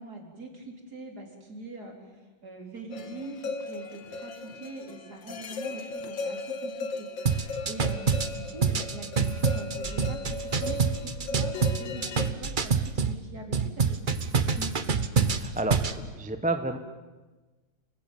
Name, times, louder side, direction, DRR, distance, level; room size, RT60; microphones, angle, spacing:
voice 1, 0.0-14.9, right 2 dB, 55° right, 2 dB, 4.7 m, -43 dB
sound 1, 2.9-12.3, left 3 dB, 75° left, 2.2 m, -37 dB
sound 2, 7.3-13.2 13.5-16.0, right 5 dB, 35° right, 1.0 m, -26 dB
voice 2, 15.2-16.8, right 2 dB, 5° right, 8 dB, 1.1 m, -31 dB
29.5 x 19.5 x 9.3 m, 1.2 s
omnidirectional pair, 2.1 m